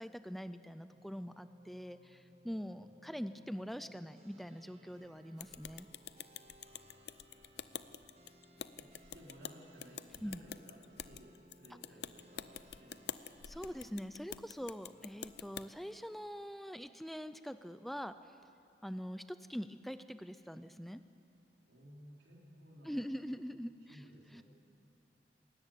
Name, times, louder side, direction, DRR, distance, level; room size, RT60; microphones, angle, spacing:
voice 1, 0.0-5.9 10.2-10.4 13.4-18.4 18.8-21.0 22.8-24.0 24.3-24.4, equal, ahead, 11 dB, 0.4 m, -43 dB
sound 1, 0.9-13.9, right 1 dB, 35° right, 1.1 m, -63 dB
voice 2, 2.6-3.0 6.6-11.3 11.6-13.4 14.9-15.0 21.6-23.1 23.8-24.4, equal, 85° right, -2 dB, 4.3 m, -59 dB
sound 2, 5.4-15.7, left 8 dB, 65° left, 0.6 m, -47 dB
sound 3, 9.8-10.1 12.3-12.9 14.9-15.5, left 2 dB, 45° left, 2.5 m, -71 dB
20.5 x 17.5 x 9.0 m, 2.6 s
head